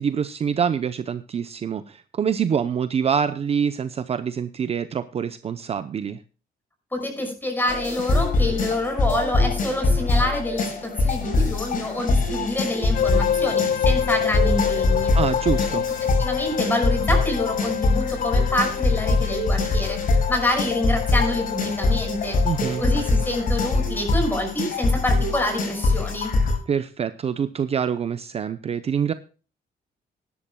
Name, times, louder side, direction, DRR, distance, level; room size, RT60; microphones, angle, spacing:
voice 1, 0.0-6.2 15.1-15.9 22.4-22.8 26.7-29.1, right 7 dB, 35° right, 12 dB, 0.7 m, -25 dB
voice 2, 6.9-15.1 16.0-22.4 22.8-26.4, left 1 dB, 10° left, 4 dB, 5.6 m, -27 dB
sound 1, 7.7-26.6, left 3 dB, 55° left, 6.2 m, -23 dB
sound 2, 12.9-23.4, left 8 dB, 70° left, 1.3 m, -28 dB
19.5 x 11.0 x 2.2 m, 0.35 s
cardioid pair, 145°, 17 cm